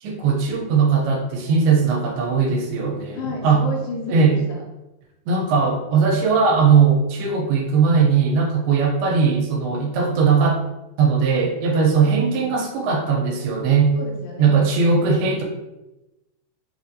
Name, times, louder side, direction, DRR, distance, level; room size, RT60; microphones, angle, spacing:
voice 1, 0.0-3.6 4.1-4.4 5.3-10.6 11.0-13.9 14.4-15.4, right 5 dB, 85° right, 1 dB, 2.7 m, -19 dB
voice 2, 3.1-4.6 13.9-14.6, left 2 dB, 80° left, -1 dB, 2.2 m, -32 dB
6.6 x 2.5 x 2.6 m, 0.99 s
omnidirectional pair, 4.4 m